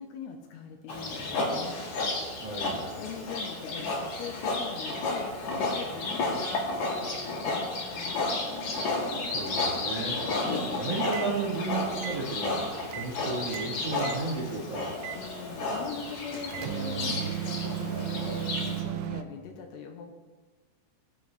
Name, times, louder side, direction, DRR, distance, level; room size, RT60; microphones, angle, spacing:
voice 1, 0.0-1.8 3.0-3.9 4.2-8.3 15.1-20.1, left 6 dB, 80° left, 3 dB, 2.8 m, -42 dB
Livestock farm animals working animals, 0.9-18.8, left 2 dB, 55° left, 2.2 m, -32 dB
voice 2, 2.4-2.8 9.2-10.5 10.7-12.6 12.9-14.9, right 3 dB, 40° right, -5 dB, 1.8 m, -33 dB
sound 1, 11.0-11.3 11.9-13.1 13.4-14.2 15.0-15.2 16.3-19.2, right 11 dB, 85° right, 2.3 m, -35 dB
18.0 x 7.8 x 3.2 m, 1.3 s
omnidirectional pair, 5.2 m